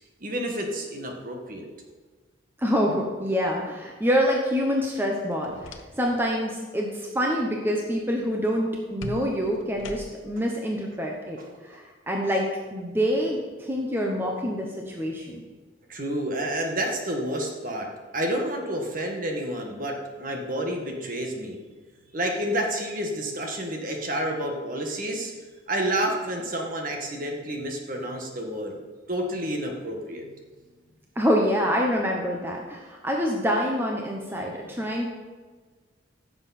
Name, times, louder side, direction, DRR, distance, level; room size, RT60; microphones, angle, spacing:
voice 1, 0.2-1.7 15.9-17.9 18.1-21.6 22.1-25.3 25.7-28.8 29.1-30.3, right 1 dB, 45° right, 2 dB, 1.6 m, -29 dB
voice 2, 2.6-15.4 31.2-35.1, equal, 10° right, 0 dB, 0.9 m, -26 dB
sound 1, 5.2-6.2 6.6-6.9 9.0-10.4, left 2 dB, 85° left, 0.9 m, -41 dB
15.5 x 7.1 x 4.3 m, 1.4 s
head